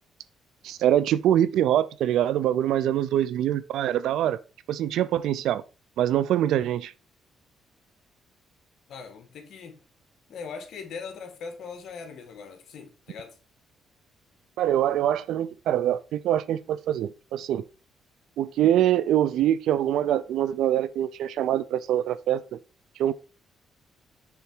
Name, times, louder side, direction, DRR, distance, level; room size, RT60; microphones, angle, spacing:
voice 1, 0.6-4.4 4.7-5.6 6.0-6.9 14.6-17.6 18.4-22.6 23.0-23.1, right 11 dB, 80° right, 0.4 m, -24 dB
voice 2, 8.9-9.8 10.3-13.3, left 5 dB, 70° left, 1.5 m, -40 dB
7.1 x 3.5 x 4.5 m
cardioid pair, 90°, 0 cm